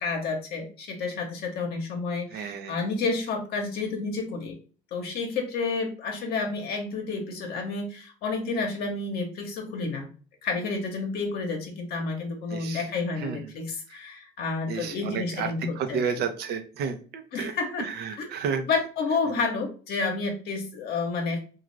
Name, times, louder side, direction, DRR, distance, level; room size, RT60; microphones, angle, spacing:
voice 1, 0.0-4.6 4.9-10.1 10.4-16.0 17.3-17.9 18.2-18.3 18.6-21.4, left 4 dB, 70° left, 2 dB, 0.8 m, -30 dB
voice 2, 2.3-2.7 12.5-12.8 13.2-13.4 14.7-17.5 17.8-18.6, right 6 dB, 75° right, 7 dB, 0.6 m, -31 dB
2.5 x 2.3 x 3.1 m, 0.39 s
cardioid pair, 110°, 17 cm